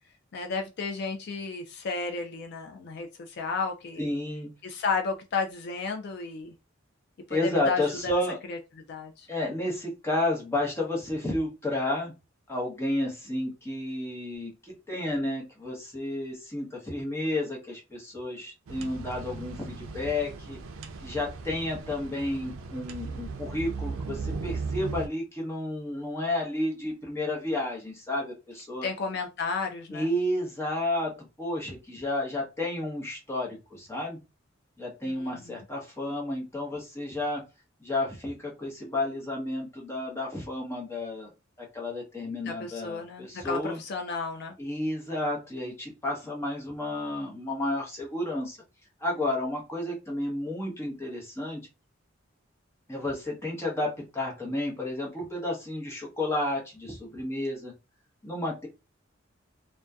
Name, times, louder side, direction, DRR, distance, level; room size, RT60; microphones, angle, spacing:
voice 1, 0.3-4.1 4.6-6.5 7.3-8.2 8.5-9.3 28.8-30.1 35.1-35.6 42.4-44.6, left 4 dB, 55° left, 4 dB, 0.4 m, -33 dB
voice 2, 4.0-4.5 7.3-8.4 9.3-12.1 12.5-20.6 21.0-28.9 29.9-34.2 34.8-37.4 37.8-41.3 41.6-43.8 44.6-48.6 49.0-51.6 52.9-57.7 58.2-58.7, left 1 dB, 15° left, -2 dB, 0.8 m, -31 dB
sound 1, 18.7-25.1, right 4 dB, 90° right, 0.4 m, -37 dB
2.6 x 2.1 x 2.3 m, 0.27 s
head